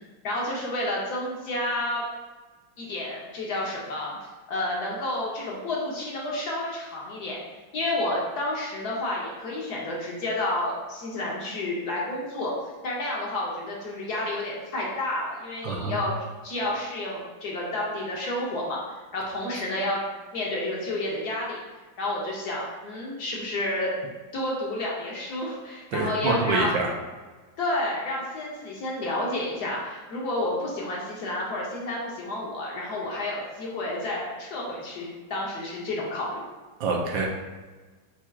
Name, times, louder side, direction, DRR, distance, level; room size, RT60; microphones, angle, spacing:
voice 1, 0.2-2.0 2.8-7.4 7.7-12.5 12.8-16.1 16.4-20.0 20.3-24.0 24.3-26.7 27.6-36.4, left 1 dB, 65° left, -3 dB, 1.1 m, -30 dB
voice 2, 15.6-16.0 25.9-26.9 36.8-37.3, right 3 dB, 75° right, 1 dB, 1.3 m, -26 dB
4.7 x 4.3 x 2.3 m, 1.3 s
omnidirectional pair, 2.1 m